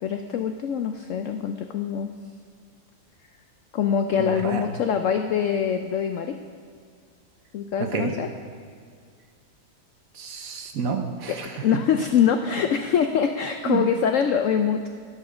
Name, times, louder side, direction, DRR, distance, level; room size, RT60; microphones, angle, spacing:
voice 1, 0.0-2.1 3.7-6.4 7.5-8.3 11.3-14.9, left 7 dB, 70° left, 7 dB, 0.7 m, -24 dB
voice 2, 4.2-4.6 7.8-8.1 10.1-11.5 13.7-13.8, right 5 dB, 60° right, 5 dB, 1.2 m, -29 dB
12.0 x 5.5 x 6.2 m, 2.2 s
omnidirectional pair, 1.8 m